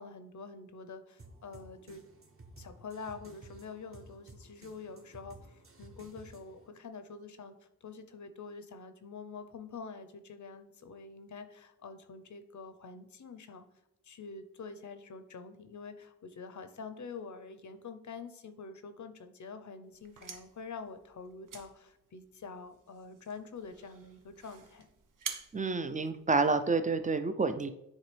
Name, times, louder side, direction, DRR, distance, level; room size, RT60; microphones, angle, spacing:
voice 1, 0.0-2.0 2.6-7.5 7.8-13.6 14.0-24.9, left 4 dB, 60° left, 9 dB, 0.7 m, -46 dB
sound 1, 1.2-6.7, right 2 dB, 40° right, 1.0 m, -54 dB
sound 2, 19.9-26.7, right 6 dB, 70° right, 0.7 m, -48 dB
voice 2, 25.5-27.7, right 4 dB, 25° right, 10 dB, 0.5 m, -29 dB
9.8 x 3.8 x 3.3 m, 0.82 s
wide cardioid pair, 90°, 33 cm